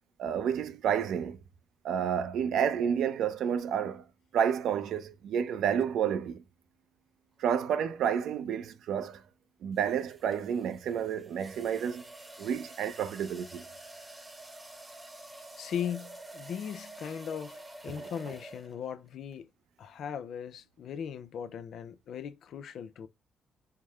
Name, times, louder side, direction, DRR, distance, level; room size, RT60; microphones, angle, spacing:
voice 1, 0.2-1.4 1.8-4.0 4.3-6.4 7.4-9.2 9.6-12.0 12.4-13.6 18.0-18.1, right 8 dB, 75° right, 0.6 m, -30 dB
sound 1, 7.8-8.1 9.8-19.0, right 1 dB, 15° right, 0.9 m, -49 dB
voice 2, 15.6-19.5 19.8-23.1, left 8 dB, 70° left, 0.6 m, -38 dB
4.6 x 2.1 x 3.5 m
cardioid pair, 90°, 0 cm